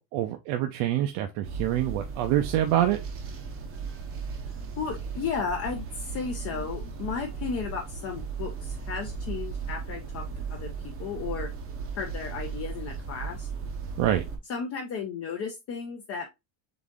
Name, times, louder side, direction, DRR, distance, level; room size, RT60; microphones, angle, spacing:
voice 1, 0.1-3.0 14.0-14.2, right 12 dB, 65° right, 0.7 m, -26 dB
sound 1, 1.4-14.4, right 5 dB, 25° right, 0.6 m, -36 dB
voice 2, 4.8-10.2 10.5-10.7 11.0-11.5 12.0-13.5 14.5-16.3, left 5 dB, 30° left, 0.5 m, -34 dB
4.0 x 3.6 x 3.5 m
cardioid pair, 180°, 50 cm